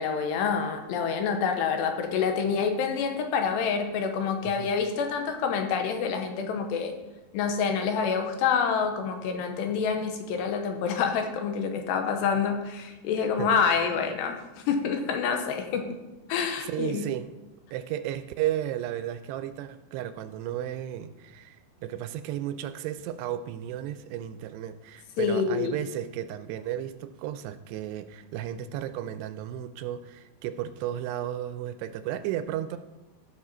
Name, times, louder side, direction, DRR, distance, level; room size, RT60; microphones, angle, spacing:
voice 1, 0.0-6.9 7.3-14.4 14.7-16.0 16.3-17.0 25.2-25.8, left 6 dB, 80° left, 5 dB, 3.1 m, -27 dB
voice 2, 13.2-13.6 16.6-17.3 17.7-32.8, right 11 dB, 85° right, 11 dB, 2.5 m, -34 dB
15.5 x 6.6 x 4.3 m, 1.1 s
omnidirectional pair, 5.0 m